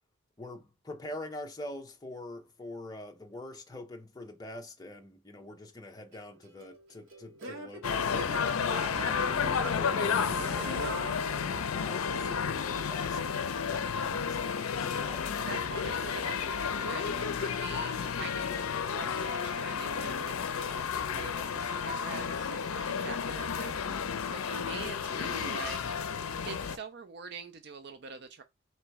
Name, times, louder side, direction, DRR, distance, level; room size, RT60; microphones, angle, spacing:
voice 1, 0.4-8.1 8.7-15.4, left 1 dB, 20° left, 0.6 m, -45 dB
Singing / Plucked string instrument, 6.1-12.0, right 2 dB, 70° right, 1.0 m, -43 dB
sound 1, 7.8-26.8, left 6 dB, 85° left, 0.5 m, -32 dB
voice 2, 10.6-10.9 15.5-25.8 26.1-28.4, right 5 dB, 50° right, 0.4 m, -45 dB
3.2 x 2.9 x 4.6 m
head